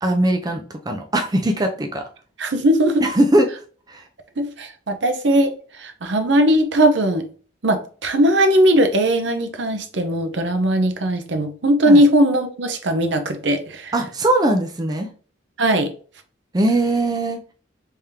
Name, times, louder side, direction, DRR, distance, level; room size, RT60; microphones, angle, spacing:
voice 1, 0.0-2.0 3.0-3.5 3.9-4.0 11.9-12.0 13.9-15.1 16.5-17.4, right 1 dB, 20° right, 4 dB, 0.4 m, -20 dB
voice 2, 2.4-3.0 4.4-7.3 7.6-13.9 15.6-15.9, right 1 dB, 70° right, 7 dB, 0.7 m, -19 dB
3.5 x 3.4 x 2.8 m, 0.40 s
head